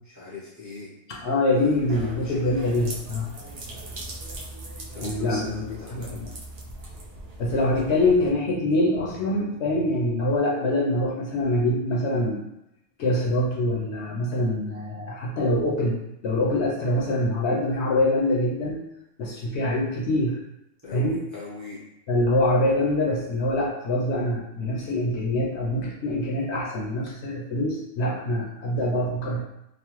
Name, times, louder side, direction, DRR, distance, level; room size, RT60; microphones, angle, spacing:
voice 1, 0.0-0.9 1.5-2.6 4.9-6.2 20.8-21.8, left 3 dB, 20° right, -8 dB, 0.6 m, -39 dB
voice 2, 1.2-3.3 5.0-6.3 7.4-12.4 13.0-18.8 19.2-20.4 20.9-21.2 22.1-29.4, left 1 dB, 65° left, -3 dB, 0.8 m, -24 dB
sound 1, 1.7-8.3, right 2 dB, 60° right, 0.8 m, -40 dB
3.0 x 2.0 x 3.0 m, 0.85 s
omnidirectional pair, 1.3 m